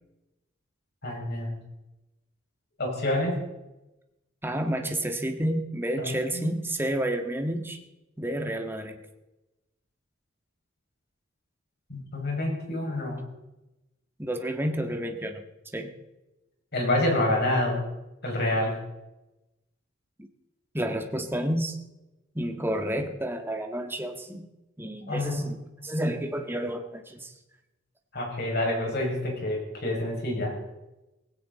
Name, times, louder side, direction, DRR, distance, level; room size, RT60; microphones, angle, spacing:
voice 1, 1.0-1.5 2.8-3.4 6.0-6.5 11.9-13.2 16.7-17.8 18.2-18.8 25.1-25.4 25.9-26.1 28.1-30.5, left 1 dB, 55° left, -1 dB, 6.3 m, -28 dB
voice 2, 4.4-7.8 8.2-9.0 14.2-15.4 15.7-15.9 20.2-20.3 20.7-21.8 22.3-24.4 24.8-27.3, right 1 dB, 10° right, 4 dB, 1.6 m, -30 dB
18.0 x 16.5 x 4.1 m, 0.98 s
head